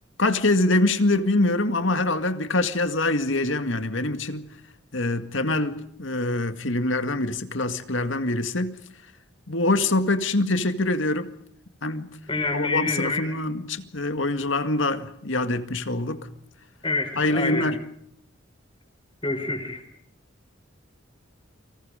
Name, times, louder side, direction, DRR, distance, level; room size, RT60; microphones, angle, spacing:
voice 1, 0.2-4.5 4.9-8.8 9.5-11.3 11.8-12.2 12.5-16.3 17.2-17.8, left 2 dB, 75° left, 2.1 m, -24 dB
voice 2, 12.3-13.3 16.8-17.7 19.2-19.8, left 3 dB, 25° left, 5.2 m, -27 dB
30.0 x 25.0 x 5.1 m
head